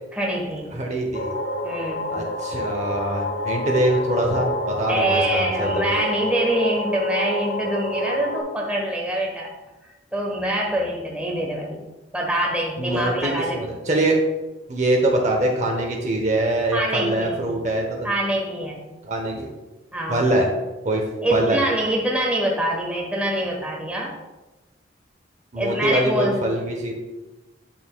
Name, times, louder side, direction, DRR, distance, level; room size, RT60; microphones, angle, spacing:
voice 1, 0.1-0.7 1.6-2.1 4.9-9.5 9.8-11.8 12.1-13.6 16.7-17.4 18.0-18.8 19.9-20.3 21.2-24.1 25.6-26.4, right 1 dB, 5° right, -1 dB, 1.0 m, -25 dB
voice 2, 0.7-1.3 2.1-5.9 12.8-14.2 14.7-18.1 19.0-19.5 20.1-20.5 20.8-21.0 21.3-21.6 25.5-26.9, right 1 dB, 40° right, 1 dB, 0.8 m, -23 dB
sound 1, 1.1-8.4, left 1 dB, 65° left, 0.9 m, -28 dB
8.6 x 5.9 x 2.2 m, 1.1 s
head